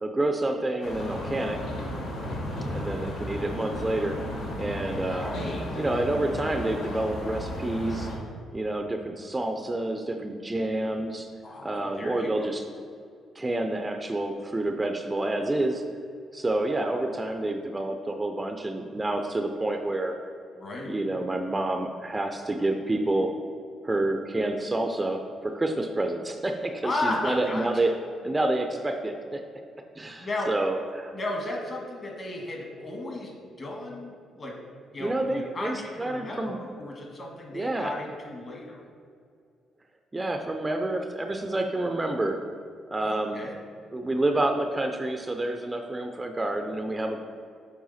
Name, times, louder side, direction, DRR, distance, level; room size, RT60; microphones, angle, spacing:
voice 1, 0.0-1.6 2.7-4.2 4.6-5.3 5.7-8.1 8.5-11.3 11.6-12.6 13.4-15.8 16.3-20.1 20.9-23.3 23.8-27.9 28.2-29.4 30.0-31.1 35.0-36.6 37.5-37.9 40.1-42.4 42.9-43.4 43.9-47.2, right 2 dB, 20° right, 5 dB, 0.4 m, -28 dB
sound 1, 0.8-8.2, left 1 dB, 85° left, 1.2 m, -34 dB
voice 2, 5.1-5.7 11.4-12.5 20.6-20.9 26.8-27.9 30.2-30.5 31.1-33.3 33.6-34.5 34.9-38.8 43.0-43.5, left 2 dB, 40° left, 0 dB, 1.5 m, -34 dB
7.6 x 3.4 x 4.1 m, 2.3 s
cardioid pair, 90°, 0 cm